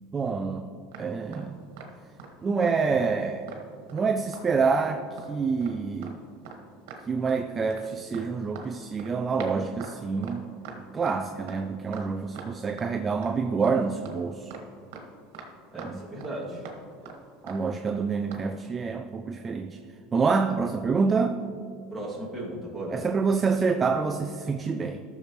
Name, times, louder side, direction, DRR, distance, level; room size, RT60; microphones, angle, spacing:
voice 1, 0.1-0.7 1.0-1.6 2.4-3.5 3.9-6.2 7.1-10.5 10.9-14.5 15.7-16.1 17.4-19.8 20.1-21.4 22.9-25.0, right 5 dB, 20° right, 7 dB, 0.4 m, -27 dB
sound 1, 0.9-2.3 2.6-2.8 3.0-4.0 4.3-4.5 4.8-5.3 5.6-5.8 6.0-6.1 6.4-6.6 6.9-7.4 7.7-12.9 13.2-13.3 13.6-15.5 15.8-16.3 16.6-16.8 17.0-17.2 17.5-17.6 17.9-18.0 18.3-18.5, right 5 dB, 80° right, 1.5 m, -43 dB
voice 2, 15.7-16.6 21.9-23.1, right 1 dB, ahead, -7 dB, 2.3 m, -36 dB
14.0 x 6.8 x 3.0 m, 2.3 s
supercardioid pair, 150°, 0 cm